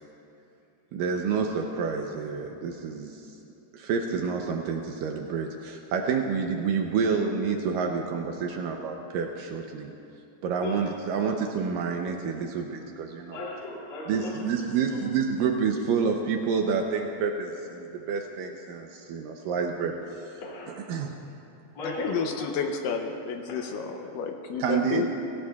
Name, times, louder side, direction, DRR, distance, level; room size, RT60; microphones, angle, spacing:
voice 1, 0.9-3.2 3.7-9.9 10.4-13.4 14.1-20.4 20.9-21.2 24.6-25.1, right 5 dB, 80° right, 3 dB, 2.0 m, -28 dB
voice 2, 13.3-15.0 20.4-20.8 21.7-22.5 23.5-23.6, left 2 dB, 35° left, -4 dB, 3.0 m, -38 dB
voice 3, 21.8-25.1, left 5 dB, 80° left, 5 dB, 2.0 m, -31 dB
25.0 x 17.0 x 2.3 m, 2.7 s
omnidirectional pair, 4.7 m